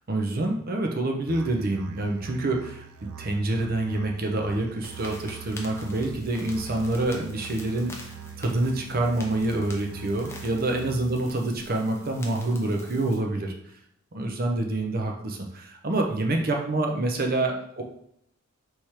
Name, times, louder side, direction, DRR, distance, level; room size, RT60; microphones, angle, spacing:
voice 1, 0.1-13.5 14.1-17.8, right 2 dB, 45° right, 2 dB, 0.7 m, -27 dB
Musical instrument, 1.3-11.2, right 7 dB, 90° right, 0.4 m, -43 dB
sound 1, 4.8-13.2, left 1 dB, 10° left, 0.6 m, -44 dB
3.5 x 3.1 x 4.3 m, 0.72 s
head